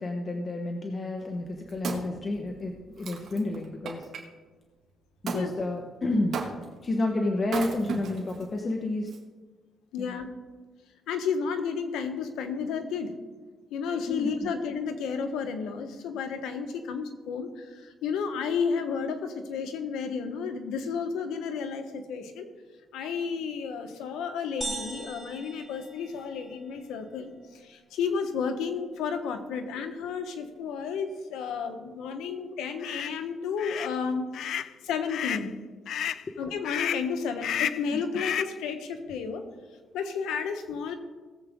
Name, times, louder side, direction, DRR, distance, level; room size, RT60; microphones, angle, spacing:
voice 1, 0.0-4.1 5.2-6.4 6.8-9.1 10.0-10.2 14.1-14.3, left 2 dB, 35° left, 2 dB, 1.2 m, -30 dB
Wood, 1.3-4.2 5.3-5.5 6.3-6.9 7.4-8.4 9.1-9.2, right 5 dB, 60° right, 2.0 m, -35 dB
voice 2, 9.9-10.3 11.1-13.1 13.7-22.5 22.9-34.5 34.8-35.5 36.4-39.4 39.9-41.0, left 6 dB, 90° left, 7 dB, 1.2 m, -32 dB
sound 1, 24.6-26.6, right 2 dB, 10° right, 2.9 m, -39 dB
sound 2, 32.8-33.1 33.6-33.9 34.3-34.7 35.1-35.5 35.9-36.2 36.6-37.1 37.4-37.9 38.2-38.6, left 10 dB, 70° left, 0.4 m, -31 dB
18.5 x 7.7 x 3.7 m, 1.3 s
cardioid pair, 90°, 0 cm